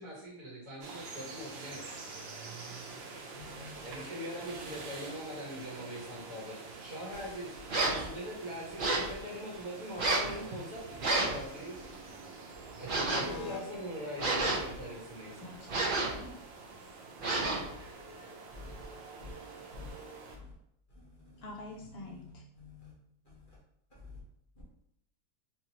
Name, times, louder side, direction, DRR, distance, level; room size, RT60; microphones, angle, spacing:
voice 1, 0.0-1.8 3.8-11.8 12.8-15.5, equal, 55° right, -5 dB, 1.6 m, -42 dB
sound 1, 0.8-20.4, right 4 dB, 80° right, 0.5 m, -47 dB
voice 2, 3.4-3.9 18.5-18.7 19.2-19.3 19.7-19.9 20.3-20.4 21.3-21.4 22.0-22.9, left 4 dB, 35° left, -7 dB, 0.9 m, -49 dB
sound 2, 7.7-8.1 8.8-9.1 10.0-10.3 11.0-11.4 12.9-13.3 14.2-14.8 15.7-16.2 17.2-17.7, right 2 dB, 40° right, 0.8 m, -30 dB
voice 3, 13.1-13.6 15.4-16.3 21.4-22.4, left 3 dB, 70° left, 0 dB, 0.5 m, -45 dB
4.5 x 2.8 x 2.8 m, 0.75 s
omnidirectional pair, 1.8 m